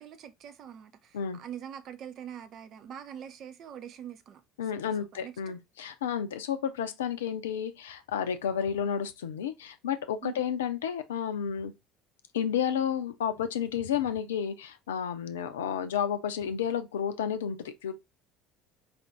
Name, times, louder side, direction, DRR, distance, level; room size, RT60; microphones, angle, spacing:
voice 1, 0.0-4.4 4.7-5.6 10.2-10.4, right 9 dB, 50° right, 0.7 m, -44 dB
voice 2, 4.6-11.7 12.3-17.9, left 8 dB, 75° left, 0.5 m, -31 dB
5.0 x 2.6 x 3.4 m
figure-of-eight pair, 60°, 0 cm